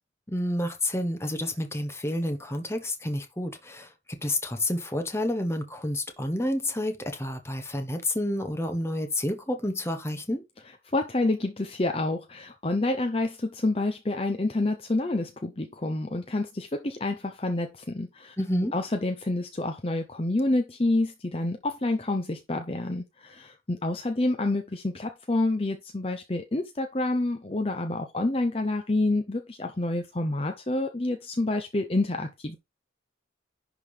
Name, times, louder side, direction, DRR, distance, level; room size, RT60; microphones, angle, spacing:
voice 1, 0.3-10.4 18.4-18.7, left 1 dB, 15° left, 1.2 m, -29 dB
voice 2, 10.9-18.4 18.7-32.6, left 2 dB, 30° left, 0.7 m, -28 dB
11.0 x 3.8 x 5.0 m
head